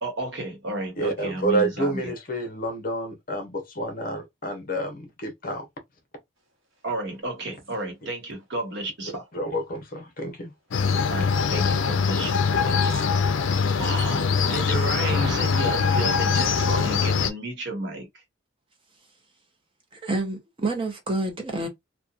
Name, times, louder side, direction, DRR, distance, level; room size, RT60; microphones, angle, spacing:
voice 1, 0.0-2.1 6.8-9.2 11.1-12.4 12.7-12.9 13.8-18.1, right 2 dB, 60° right, 1.1 m, -32 dB
voice 2, 1.0-5.6 9.3-10.5, right 1 dB, 45° left, 0.7 m, -29 dB
sound 1, 7.6-7.7 8.3-8.4 12.9-13.0 14.3-16.5, equal, 80° right, 0.9 m, -36 dB
sound 2, 10.7-17.3, left 5 dB, 70° left, 0.4 m, -23 dB
voice 3, 19.9-21.7, right 2 dB, 25° right, 0.7 m, -28 dB
2.9 x 2.2 x 2.3 m
head